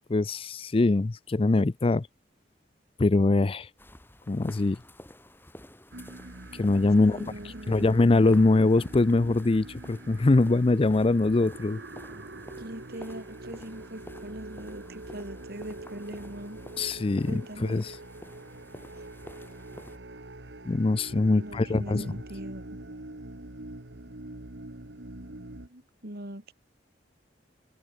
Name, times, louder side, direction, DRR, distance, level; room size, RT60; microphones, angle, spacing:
voice 1, 0.1-2.1 3.0-3.7 4.3-4.8 6.5-11.8 16.8-18.0 20.7-22.1, left 2 dB, 30° left, 0.5 m, -23 dB
sound 1, 3.8-20.0, left 1 dB, 10° left, 5.8 m, -50 dB
sound 2, 5.9-25.7, right 2 dB, 85° right, 2.1 m, -44 dB
voice 2, 7.0-7.9 12.6-16.6 17.3-17.8 21.3-22.6 25.7-26.5, right 1 dB, 60° right, 4.2 m, -41 dB
head